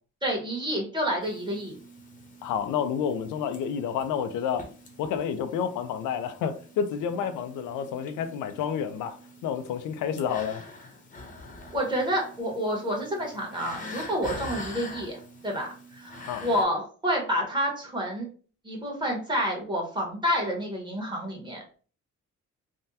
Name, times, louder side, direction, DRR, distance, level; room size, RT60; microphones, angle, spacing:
voice 1, 0.2-1.8 11.7-18.3 18.6-21.6, equal, 15° right, 1.3 m, -29 dB
sound 1, 1.2-16.6, left 2 dB, 25° left, 0.8 m, -45 dB
voice 2, 2.4-4.7 5.0-10.6 16.3-16.5, left 8 dB, 85° left, 0.5 m, -30 dB
3.4 x 2.1 x 2.7 m
cardioid pair, 90°, 30 cm